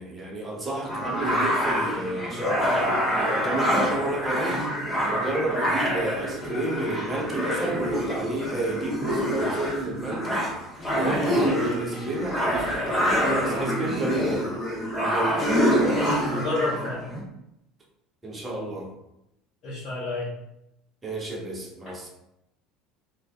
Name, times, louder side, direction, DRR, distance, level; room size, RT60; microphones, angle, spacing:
voice 1, 0.0-4.6 5.0-10.5 10.9-14.4 14.9-15.6 18.2-18.9 21.0-22.1, right 2 dB, 20° right, -1 dB, 0.7 m, -31 dB
sound 1, 0.9-17.2, equal, 15° left, 1.2 m, -26 dB
voice 2, 15.8-17.1 19.6-20.3, left 3 dB, 40° left, -8 dB, 0.7 m, -30 dB
3.3 x 2.3 x 2.2 m, 0.84 s
figure-of-eight pair, 65°, 0 cm